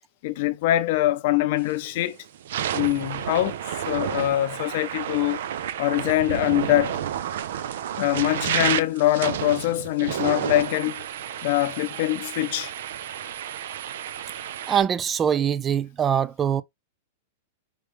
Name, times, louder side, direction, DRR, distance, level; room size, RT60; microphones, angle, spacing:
voice 1, 0.2-2.2 2.7-5.4 5.8-7.0 8.0-11.0 11.4-12.7, left 15 dB, 50° left, 0.5 m, -23 dB
sound 1, 1.6-1.9 2.3-14.8, right 10 dB, 70° right, 0.5 m, -31 dB
voice 2, 14.7-16.6, right 8 dB, 20° right, 0.3 m, -23 dB
4.9 x 3.2 x 3.1 m
supercardioid pair, 150°, 0 cm